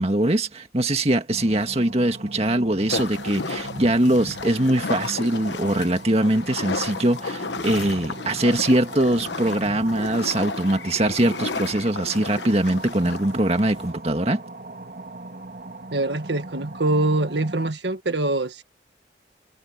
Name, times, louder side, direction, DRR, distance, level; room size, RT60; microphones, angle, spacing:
voice 1, 0.0-14.4, right 1 dB, 35° right, 1.9 m, -22 dB
sound 1, 1.3-17.7, right 2 dB, 55° right, 2.5 m, -39 dB
sound 2, 2.9-13.9, left 4 dB, 85° left, 1.2 m, -33 dB
voice 2, 15.9-18.6, right 2 dB, 80° right, 1.7 m, -24 dB
head